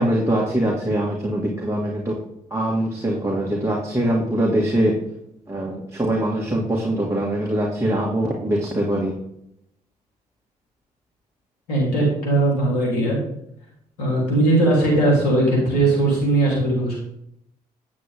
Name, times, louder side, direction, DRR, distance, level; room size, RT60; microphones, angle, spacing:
voice 1, 0.0-2.2 2.5-4.9 5.5-9.1, right 1 dB, 15° right, -3 dB, 2.2 m, -22 dB
voice 2, 11.7-13.2 14.0-17.0, right 2 dB, 80° left, -3 dB, 3.6 m, -19 dB
9.0 x 7.6 x 3.7 m, 0.77 s
hypercardioid pair, 45°, 20 cm